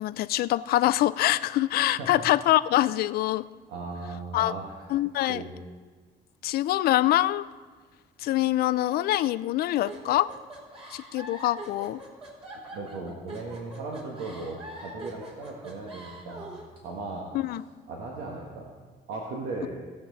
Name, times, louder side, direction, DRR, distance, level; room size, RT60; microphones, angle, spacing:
voice 1, 0.0-3.4 4.3-4.5 4.9-5.4 6.4-7.5 8.2-10.3 10.9-12.0 17.3-17.6, left 14 dB, 65° left, 16 dB, 0.4 m, -24 dB
voice 2, 3.7-4.8 5.3-5.5 10.7-11.1 12.7-16.5 16.8-17.3 17.9-18.7 19.1-19.7, right 3 dB, 90° right, -2 dB, 1.6 m, -37 dB
sound 1, 9.8-16.7, right 1 dB, 35° right, 3.1 m, -43 dB
18.5 x 7.3 x 4.1 m, 1.4 s
cardioid pair, 110°, 17 cm